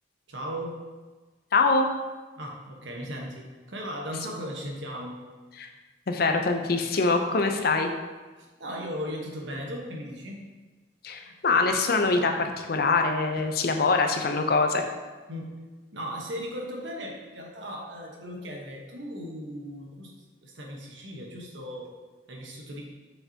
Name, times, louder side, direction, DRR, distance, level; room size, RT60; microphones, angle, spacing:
voice 1, 0.3-0.8 2.4-5.2 8.4-10.4 11.2-11.3 15.3-15.5 15.9-20.1 20.4-21.9 22.3-22.8, equal, 80° right, 0 dB, 1.2 m, -37 dB
voice 2, 1.5-1.9 5.6-5.7 6.1-7.9 11.0-14.8, left 3 dB, 55° left, 5 dB, 0.6 m, -24 dB
6.7 x 5.6 x 2.8 m, 1.3 s
head